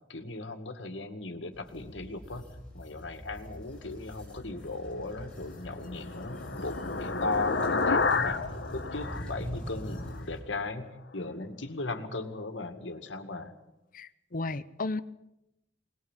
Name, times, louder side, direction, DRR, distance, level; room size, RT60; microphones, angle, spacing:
voice 1, 0.1-2.5 2.7-8.4 8.7-13.5, left 3 dB, 85° left, 7 dB, 2.1 m, -37 dB
sound 1, 1.5-10.4, equal, 5° left, 5.6 m, -43 dB
sound 2, 5.4-10.2, left 4 dB, 65° left, 1.3 m, -31 dB
voice 2, 13.9-15.0, left 2 dB, 50° left, 14 dB, 0.8 m, -34 dB
21.5 x 20.0 x 7.5 m, 0.87 s
head